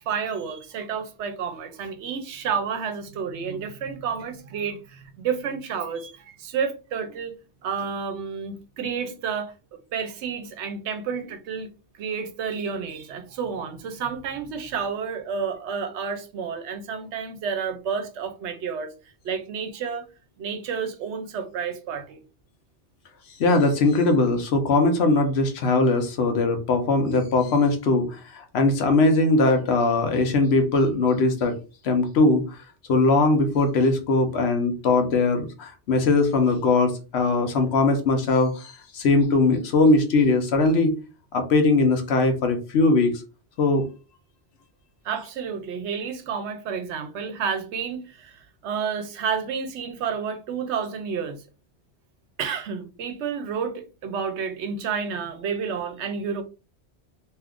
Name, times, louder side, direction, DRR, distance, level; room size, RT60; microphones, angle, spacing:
voice 1, 0.0-7.3 7.6-9.5 9.9-11.7 12.0-18.9 19.2-20.0 20.4-22.2 45.0-51.4 52.4-56.4, right 6 dB, 75° right, 0.9 m, -30 dB
voice 2, 23.4-31.5 31.8-32.6 32.9-41.0 41.3-43.1 43.6-43.9, left 3 dB, 70° left, 0.9 m, -20 dB
2.7 x 2.4 x 3.5 m
omnidirectional pair, 1.2 m